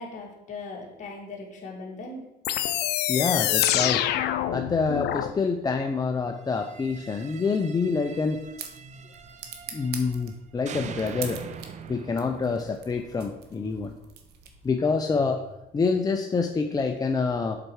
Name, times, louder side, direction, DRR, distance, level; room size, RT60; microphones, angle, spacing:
voice 1, 0.0-2.2, left 3 dB, 45° left, -1 dB, 2.2 m, -39 dB
sound 1, 2.4-5.3, left 12 dB, 80° left, 0.5 m, -25 dB
voice 2, 3.1-4.1 4.5-8.4 9.7-11.4 11.9-13.9 14.6-17.6, left 4 dB, 20° left, 4 dB, 0.5 m, -27 dB
sound 2, 6.5-10.3 10.7-13.7, right 7 dB, 45° right, 0.6 m, -43 dB
sound 3, 8.0-14.9, right 7 dB, 70° right, 1.0 m, -44 dB
7.4 x 4.4 x 4.8 m, 0.90 s
cardioid pair, 110°, 17 cm